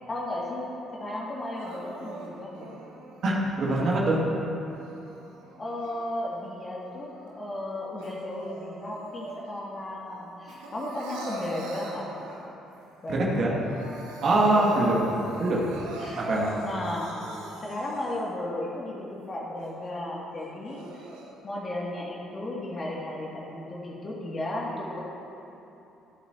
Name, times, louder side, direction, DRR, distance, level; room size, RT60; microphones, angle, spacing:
voice 1, 0.1-0.7 1.0-2.8 5.6-12.0 13.0-13.6 14.5-15.1 16.0-16.2 16.6-17.1 17.6-21.0 21.4-25.0, left 1 dB, 35° left, -4 dB, 2.6 m, -34 dB
Crying sobbing, 1.5-4.0 4.6-6.4 6.8-9.8 10.1-12.7 13.2-13.3 13.5-18.4 18.9-19.0 19.6-19.7 20.4-21.3, right 2 dB, 70° right, 1.3 m, -44 dB
voice 2, 3.2-4.2 13.1-13.6 14.2-15.1 15.4-15.7 16.1-16.6, right 2 dB, 50° right, -4 dB, 2.5 m, -23 dB
24.5 x 8.5 x 3.0 m, 3.0 s
figure-of-eight pair, 45°, 0 cm